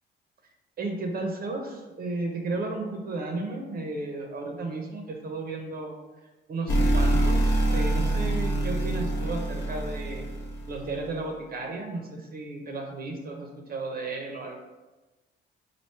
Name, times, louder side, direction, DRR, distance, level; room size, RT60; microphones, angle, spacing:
voice 1, 0.8-6.0 6.5-10.3 10.7-14.6, right 2 dB, 50° right, 2 dB, 0.6 m, -34 dB
sound 1, 6.7-10.9, right 1 dB, 65° left, 0.9 m, -25 dB
3.0 x 2.6 x 4.4 m, 1.1 s
cardioid pair, 90°, 20 cm